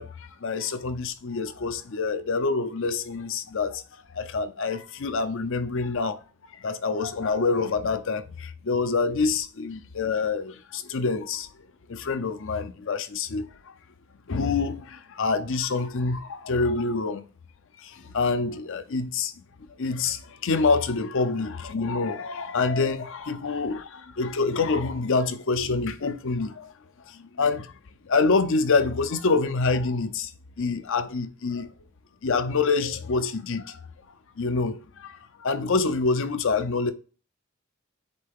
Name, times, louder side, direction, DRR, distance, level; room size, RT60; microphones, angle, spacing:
voice 1, 0.0-3.8 4.1-6.2 6.5-11.5 11.9-13.5 14.3-17.2 17.8-19.3 19.8-26.7 27.1-27.7 28.1-30.3 30.6-31.7 32.2-33.8 34.4-36.9, left 4 dB, 65° left, 0.6 m, -26 dB
8.1 x 3.3 x 3.6 m
head